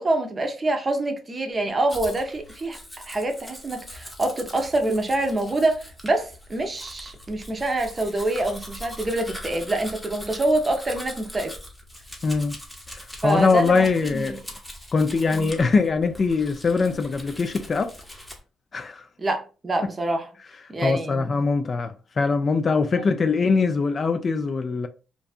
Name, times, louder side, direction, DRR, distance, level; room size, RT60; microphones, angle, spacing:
voice 1, 0.0-2.8 3.0-11.5 13.2-14.4 15.3-15.5 19.2-20.3 20.7-21.4 23.0-23.1, right 2 dB, 30° right, 0.6 m, -26 dB
Domestic sounds home sounds, 1.9-18.4, equal, 10° left, 0.8 m, -41 dB
voice 2, 12.2-12.6 13.2-14.4 14.9-17.9 18.7-19.0 20.8-24.9, left 4 dB, 40° left, 0.3 m, -22 dB
2.6 x 2.3 x 2.4 m
cardioid pair, 90°, 0 cm